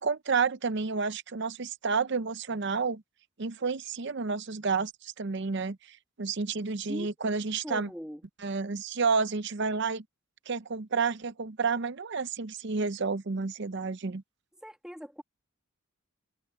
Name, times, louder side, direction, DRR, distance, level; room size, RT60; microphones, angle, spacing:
voice 1, 0.0-3.0 3.4-7.9 8.4-10.0 10.5-14.2, right 4 dB, 55° right, 0.7 m, -30 dB
voice 2, 7.6-8.2 14.6-15.2, equal, 5° right, 2.1 m, -40 dB
head